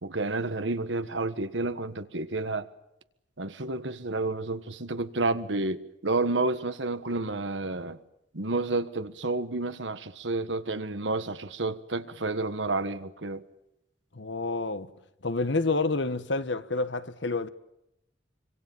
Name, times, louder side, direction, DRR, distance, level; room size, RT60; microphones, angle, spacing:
voice 1, 0.0-2.7 3.4-8.0 8.3-13.4, right 2 dB, 90° right, 1.5 m, -30 dB
voice 2, 14.1-14.9 15.2-17.5, left 3 dB, 80° left, 1.4 m, -28 dB
25.5 x 25.5 x 7.3 m
head